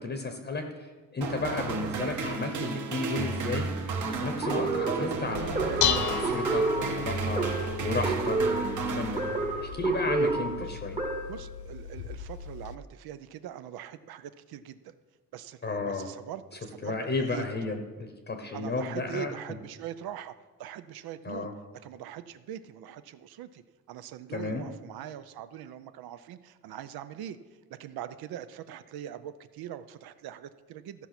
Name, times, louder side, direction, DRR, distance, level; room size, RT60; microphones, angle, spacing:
voice 1, 0.0-3.7 4.1-9.2 9.6-11.0 15.6-16.1 16.8-19.3 21.2-21.5 24.3-24.6, left 3 dB, 30° left, 5 dB, 0.9 m, -33 dB
sound 1, 1.2-9.8, right 4 dB, 50° right, 1.3 m, -33 dB
sound 2, 4.4-11.5, right 3 dB, 15° right, 1.0 m, -30 dB
Dishes pots and pans, 5.3-12.7, left 9 dB, 55° left, 0.5 m, -35 dB
voice 2, 11.3-14.9 15.3-17.5 18.5-20.3 20.6-21.5 21.8-23.6 23.9-27.4 27.7-31.1, right 11 dB, 75° right, 12 dB, 0.6 m, -42 dB
14.5 x 5.6 x 5.9 m, 1.4 s
cardioid pair, 140°, 37 cm